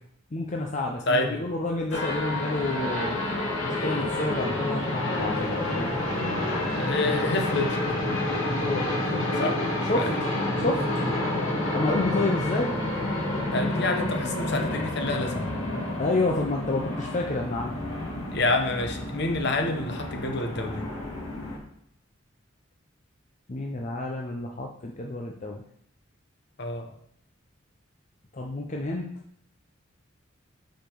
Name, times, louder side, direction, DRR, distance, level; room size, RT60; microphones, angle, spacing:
voice 1, 0.3-3.2 3.6-6.2 8.6-9.2 9.9-10.1 10.6-10.9 11.7-12.8 16.0-17.7 23.5-25.6 28.3-29.1, left 2 dB, 35° left, 0 dB, 0.6 m, -29 dB
voice 2, 1.1-1.5 6.8-8.0 9.4-9.6 9.9-10.2 13.5-15.5 18.3-20.8 26.6-26.9, left 2 dB, 55° left, 4 dB, 0.9 m, -28 dB
sound 1, 1.9-21.6, left 1 dB, 80° left, 1.8 m, -29 dB
7.1 x 5.1 x 4.5 m, 0.69 s
head